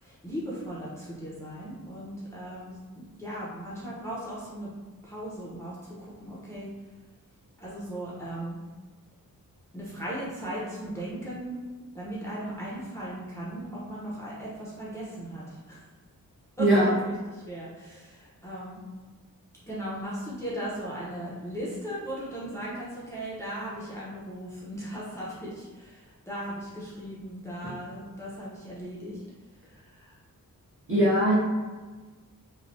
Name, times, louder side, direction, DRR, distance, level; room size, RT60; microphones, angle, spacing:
voice 1, 0.0-4.7 5.0-6.7 7.6-8.6 9.7-11.6 11.9-15.8 16.6-18.8 19.7-29.2 29.7-30.2, right 1 dB, 10° left, -8 dB, 0.8 m, -37 dB
voice 2, 30.9-31.3, right 1 dB, 35° right, -9 dB, 1.4 m, -20 dB
3.2 x 2.3 x 2.6 m, 1.3 s
cardioid pair, 60°, 36 cm